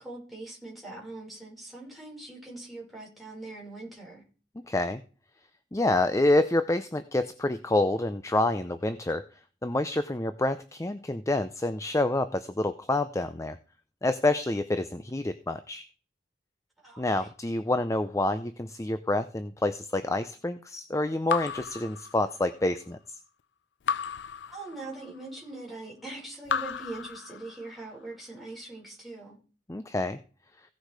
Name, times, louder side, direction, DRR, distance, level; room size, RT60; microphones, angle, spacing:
voice 1, 0.0-4.2 16.8-17.3 24.5-29.4, right 2 dB, ahead, -4 dB, 6.0 m, -42 dB
voice 2, 4.7-5.0 5.7-9.2 9.6-13.6 14.0-15.8 17.0-23.0 29.7-30.2, left 2 dB, 20° left, 11 dB, 0.6 m, -27 dB
Raindrop / Drip, 21.3-22.7 23.9-25.2 26.4-27.9, left 7 dB, 85° left, 0.5 m, -34 dB
16.0 x 6.5 x 4.9 m, 0.38 s
head